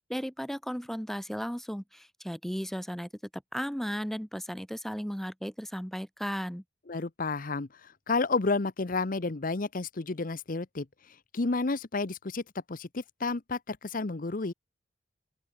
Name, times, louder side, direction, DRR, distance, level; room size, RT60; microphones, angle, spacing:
voice 1, 0.0-6.6, equal, ahead, 1.6 m, -35 dB
voice 2, 6.9-10.9 11.3-12.4 12.7-14.5, left 3 dB, 50° left, 0.9 m, -31 dB
open air
head